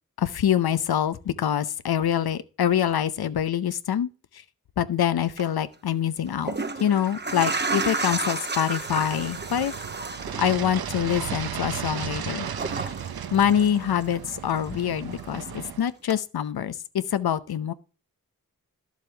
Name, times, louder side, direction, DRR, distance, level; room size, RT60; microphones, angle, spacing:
voice 1, 0.2-4.1 4.8-9.7 10.4-12.5 13.3-17.7, left 9 dB, 90° left, 0.7 m, -25 dB
sound 1, 5.2-5.4 6.3-14.3 14.6-15.7 16.1-16.2, right 3 dB, 30° right, 1.0 m, -33 dB
sound 2, 8.9-15.8, right 8 dB, 80° right, 0.8 m, -35 dB
11.5 x 7.4 x 3.3 m
cardioid pair, 45°, 36 cm